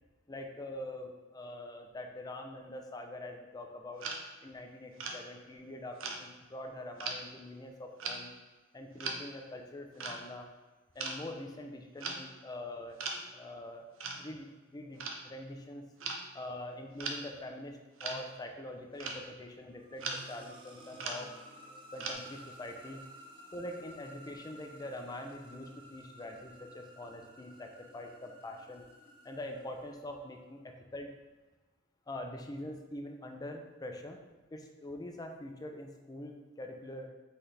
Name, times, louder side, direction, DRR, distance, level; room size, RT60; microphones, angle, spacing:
voice 1, 0.3-4.1 4.4-8.3 8.7-10.5 10.9-13.0 13.3-15.8 16.3-21.3 21.9-23.0 23.5-28.9 29.2-31.1 32.1-34.2 34.5-37.1, left 1 dB, 20° left, 4 dB, 0.4 m, -44 dB
sound 1, 4.0-4.2 5.0-5.2 6.0-6.2 7.0-7.2 8.0-8.2 9.0-9.2 10.0-10.2 11.0-11.2 12.0-12.2 13.0-13.2 14.0-14.2 15.0-15.2 16.0-16.2 17.0-17.2 18.0-18.3 19.0-19.2 20.0-20.3 20.8-21.5 22.0-22.1, right 4 dB, 80° right, 0.6 m, -38 dB
sound 2, 19.6-30.4, equal, 25° right, 0.6 m, -54 dB
4.1 x 4.0 x 3.2 m, 1.3 s
head